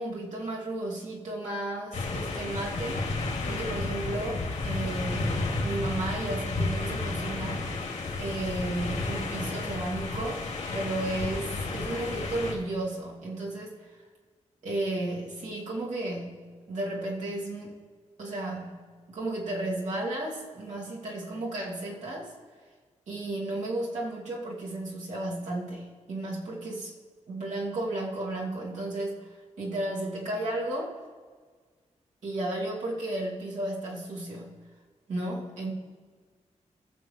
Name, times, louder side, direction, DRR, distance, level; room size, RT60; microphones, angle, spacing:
voice 1, 0.0-3.0 3.4-7.6 8.2-10.4 10.7-13.8 14.6-16.4 16.7-17.7 18.2-22.3 23.1-26.9 27.3-29.2 29.6-31.0 32.2-34.5 35.1-35.7, right 1 dB, 80° right, -4 dB, 2.5 m, -33 dB
sound 1, 1.9-12.5, left 3 dB, 80° left, 2.4 m, -32 dB
19.5 x 7.3 x 3.2 m, 1.5 s
wide cardioid pair, 170°, 12 cm